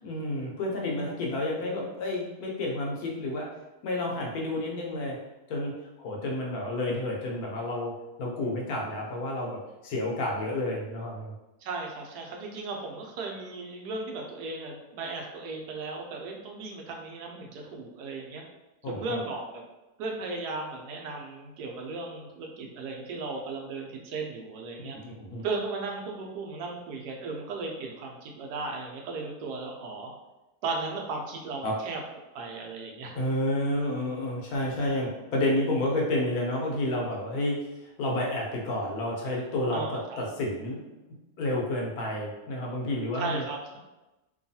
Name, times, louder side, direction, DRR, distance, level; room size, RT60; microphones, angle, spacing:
voice 1, 0.0-3.5 3.8-5.2 5.5-5.7 6.0-7.9 8.2-11.3 18.8-19.2 24.9-25.4 31.6-31.8 33.1-37.6 38.0-40.8 41.4-43.4, left 1 dB, 70° left, -2 dB, 1.1 m, -30 dB
voice 2, 11.6-18.4 18.9-19.6 20.0-25.0 25.4-30.1 30.6-32.0 32.3-33.2 39.7-40.2 43.1-43.8, right 3 dB, 85° right, 1 dB, 1.1 m, -36 dB
3.0 x 2.3 x 2.7 m, 1.0 s
omnidirectional pair, 1.7 m